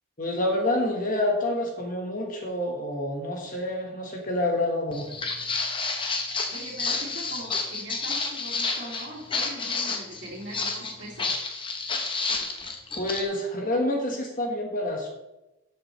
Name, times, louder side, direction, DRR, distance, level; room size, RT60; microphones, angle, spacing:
voice 1, 0.2-5.1 12.9-15.1, left 1 dB, 40° left, 1 dB, 1.4 m, -27 dB
Walk footsteps, 4.9-13.2, left 4 dB, 25° left, 0.9 m, -30 dB
voice 2, 6.5-11.4, right 1 dB, 55° right, -8 dB, 2.5 m, -41 dB
12.0 x 8.0 x 3.2 m, 0.98 s
head